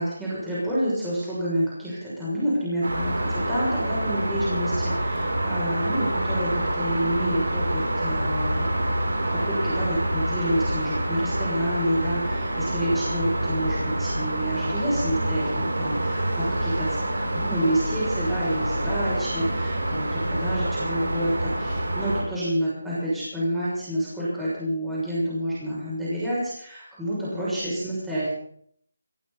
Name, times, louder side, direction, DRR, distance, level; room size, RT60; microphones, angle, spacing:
voice 1, 0.0-9.0 9.4-16.9 17.2-28.3, equal, 5° right, -10 dB, 6.4 m, -28 dB
sound 1, 2.8-22.2, right 1 dB, 90° right, 6.8 m, -27 dB
20.5 x 16.5 x 4.1 m, 0.65 s
figure-of-eight pair, 170°, 0 cm